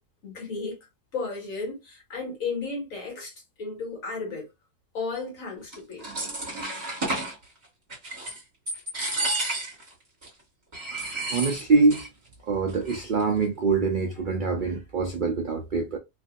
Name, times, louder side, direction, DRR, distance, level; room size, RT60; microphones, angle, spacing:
voice 1, 0.2-0.8 1.1-3.3 3.6-4.4 4.9-6.3, left 4 dB, 60° left, 1.9 m, -34 dB
sound 1, 5.7-7.3 7.9-8.4 8.7-9.9 10.2-10.3 10.7-12.1 12.3-12.4 12.7-13.2, right 2 dB, 30° right, 1.6 m, -31 dB
voice 2, 10.9-12.1 12.5-16.0, right 4 dB, 80° right, 0.4 m, -24 dB
3.3 x 2.6 x 2.4 m
omnidirectional pair, 1.6 m